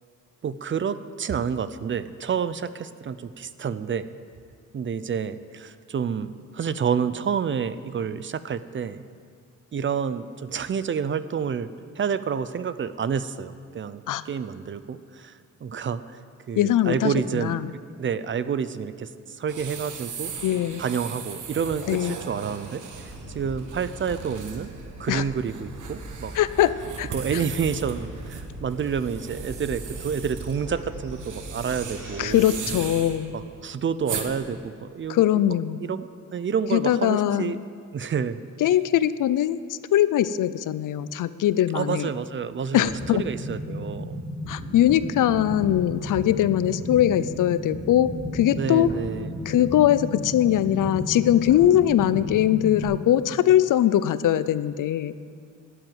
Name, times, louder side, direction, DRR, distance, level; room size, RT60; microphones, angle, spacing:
voice 1, 0.4-4.1 4.7-9.0 9.7-11.7 12.0-16.2 16.5-17.6 18.0-19.1 19.4-20.3 20.8-24.7 25.0-26.3 27.1-32.6 33.3-35.4 35.8-37.6 37.9-38.4 41.7-44.2 48.5-49.3, right 7 dB, 40° right, 14 dB, 0.5 m, -29 dB
voice 2, 16.6-17.7 20.4-20.8 21.9-22.2 25.1-25.2 26.3-27.1 32.2-33.3 35.1-35.8 36.7-37.5 38.6-42.1 42.7-43.2 44.5-48.9 49.5-55.1, left 11 dB, 80° left, 15 dB, 0.5 m, -21 dB
sound 1, 19.5-34.3, right 6 dB, 75° right, 1.3 m, -38 dB
sound 2, 22.9-32.8, right 1 dB, 90° right, 4.4 m, -40 dB
sound 3, 42.8-52.8, left 1 dB, 25° left, 3.4 m, -34 dB
12.5 x 7.9 x 9.1 m, 2.2 s
wide cardioid pair, 140°, 31 cm